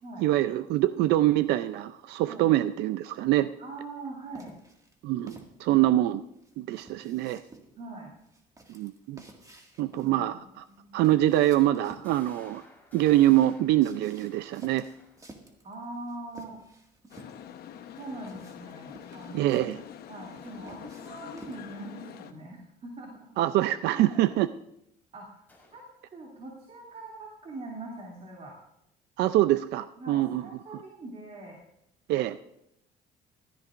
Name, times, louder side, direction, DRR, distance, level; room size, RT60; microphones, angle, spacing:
voice 1, 0.2-3.5 5.0-6.2 6.6-7.4 8.7-9.2 9.8-10.6 10.9-12.6 12.9-14.9 19.3-19.8 23.4-24.5 29.2-30.4 32.1-32.4, right 14 dB, 80° right, 12 dB, 0.5 m, -24 dB
voice 2, 3.6-4.6 7.8-8.1 10.7-10.9 15.6-16.6 18.0-19.6 20.1-23.3 23.9-24.3 25.1-25.4 25.7-25.8 26.1-28.6 30.0-31.6, right 2 dB, 40° right, -1 dB, 2.7 m, -42 dB
sound 1, 4.3-21.8, right 2 dB, 20° right, 2.0 m, -53 dB
sound 2, 12.0-15.5 20.4-20.8 25.5-26.0, left 2 dB, 10° left, 4.4 m, -57 dB
sound 3, 17.1-22.3, left 9 dB, 65° left, 1.0 m, -45 dB
15.5 x 13.5 x 2.5 m, 0.79 s
cardioid pair, 110°, 17 cm